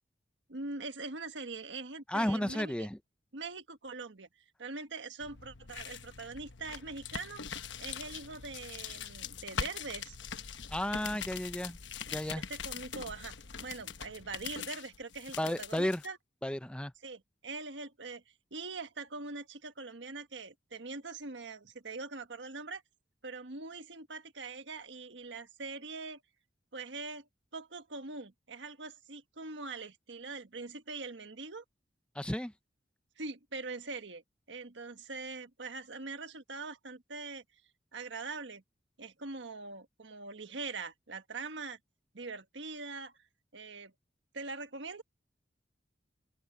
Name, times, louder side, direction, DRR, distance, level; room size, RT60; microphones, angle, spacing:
voice 1, 0.5-2.9 3.3-4.3 4.6-7.4 7.8-10.2 12.4-13.3 13.6-16.2 17.0-18.2 18.5-22.8 23.2-26.2 26.7-31.6 32.2-32.4 33.2-34.2 34.5-37.4 37.9-38.6 39.0-41.8 42.1-43.1 43.5-43.9 44.3-45.0, right 3 dB, 85° right, 1.5 m, -43 dB
voice 2, 2.1-3.0 10.7-11.8 12.1-12.4 15.4-16.0 16.4-16.9 32.2-32.5, left 1 dB, 5° left, 0.5 m, -33 dB
sound 1, 5.2-16.1, left 7 dB, 85° left, 1.1 m, -42 dB
open air
head